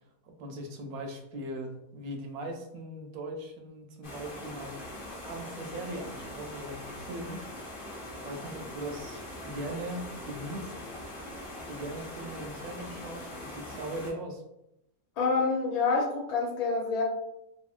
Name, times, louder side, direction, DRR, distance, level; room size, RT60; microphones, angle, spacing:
voice 1, 0.2-4.8 5.2-7.4 7.8-10.9 11.7-14.4, right 1 dB, 80° right, 3 dB, 1.0 m, -40 dB
sound 1, 4.0-14.1, left 1 dB, 50° left, 0.7 m, -42 dB
voice 2, 15.2-17.0, left 4 dB, 75° left, -1 dB, 1.1 m, -27 dB
2.8 x 2.6 x 2.3 m, 0.84 s
omnidirectional pair, 1.5 m